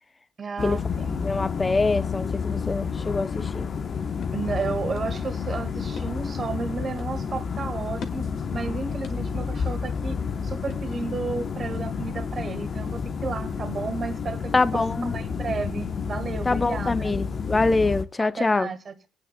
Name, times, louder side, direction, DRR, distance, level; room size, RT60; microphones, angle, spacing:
voice 1, 0.4-1.3 4.3-14.8 15.1-17.2 18.2-19.1, right 4 dB, 45° right, 1.7 m, -33 dB
sound 1, 0.6-18.0, left 6 dB, 50° left, 0.9 m, -30 dB
voice 2, 1.2-3.7 14.5-15.1 16.5-18.7, left 3 dB, 25° left, 0.5 m, -24 dB
sound 2, 3.8-11.3, left 3 dB, 65° left, 1.5 m, -48 dB
24.5 x 9.0 x 2.2 m
cardioid pair, 90°, 0 cm